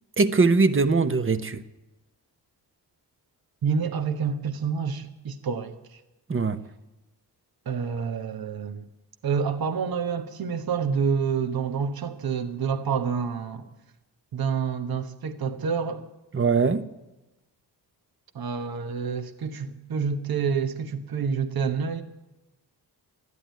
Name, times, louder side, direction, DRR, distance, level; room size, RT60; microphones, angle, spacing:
voice 1, 0.2-1.6 6.3-6.6 16.3-16.8, right 4 dB, 30° right, 1.0 m, -21 dB
voice 2, 3.6-6.0 7.6-8.8 9.2-13.7 14.3-16.1 18.3-22.0, right 6 dB, 60° right, 1.2 m, -28 dB
14.0 x 11.0 x 9.3 m
cardioid pair, 65°, 42 cm